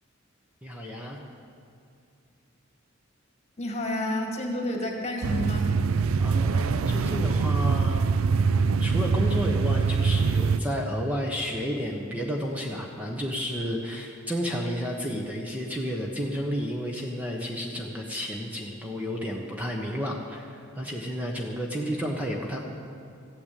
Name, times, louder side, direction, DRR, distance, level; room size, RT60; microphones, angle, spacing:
voice 1, 0.6-1.2 6.2-22.6, equal, 5° right, -1 dB, 1.1 m, -32 dB
voice 2, 3.6-5.7, left 1 dB, 30° left, 2 dB, 2.1 m, -30 dB
sound 1, 5.2-10.6, right 5 dB, 85° right, 0.5 m, -24 dB
15.0 x 9.4 x 8.4 m, 2.6 s
head